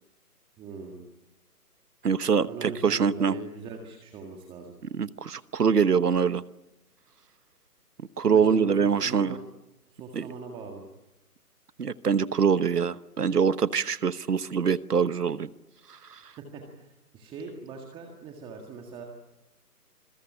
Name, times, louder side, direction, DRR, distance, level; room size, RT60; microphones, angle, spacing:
voice 1, 0.6-1.0 2.4-4.7 8.3-9.4 9.9-10.8 16.2-19.0, right 4 dB, 10° right, 2 dB, 1.7 m, -41 dB
voice 2, 2.0-3.4 4.9-6.4 8.0-9.4 10.1-10.3 11.8-15.5 15.9-16.3, right 6 dB, 75° right, 16 dB, 1.2 m, -24 dB
26.5 x 22.5 x 8.6 m, 0.95 s
figure-of-eight pair, 145°, 47 cm